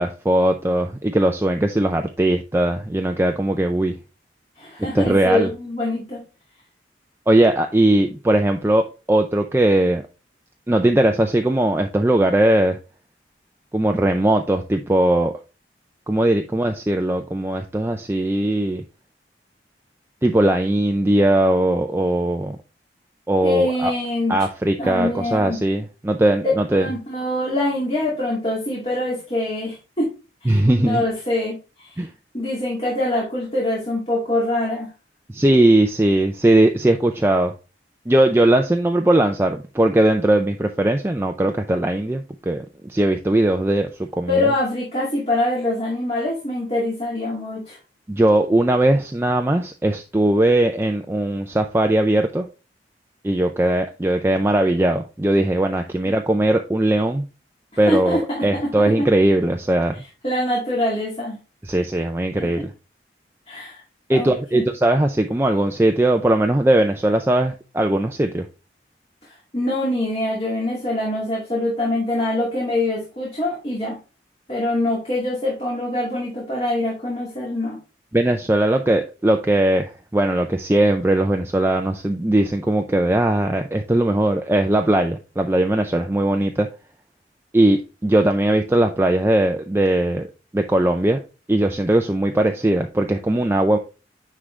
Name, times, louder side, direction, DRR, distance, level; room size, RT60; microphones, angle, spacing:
voice 1, 0.0-3.9 4.9-5.5 7.3-10.0 10.7-12.8 13.7-15.3 16.1-18.8 20.2-22.6 23.3-23.9 24.3-26.9 30.5-31.0 32.0-32.1 35.3-37.5 38.1-44.5 48.1-52.5 53.2-57.3 57.8-59.9 61.6-62.7 64.1-68.5 78.1-86.7 87.5-90.3 90.5-91.2 91.5-93.8, right 1 dB, 15° right, 5 dB, 0.4 m, -19 dB
voice 2, 4.6-6.2 23.4-24.4 24.8-25.6 26.7-30.1 30.4-32.1 32.3-34.9 44.3-47.8 57.9-58.7 59.0-59.1 60.2-61.4 62.3-62.5 63.5-63.8 64.1-64.7 69.2-74.0 74.5-77.8, left 1 dB, 30° left, -4 dB, 2.2 m, -24 dB
9.6 x 3.8 x 3.2 m, 0.31 s
head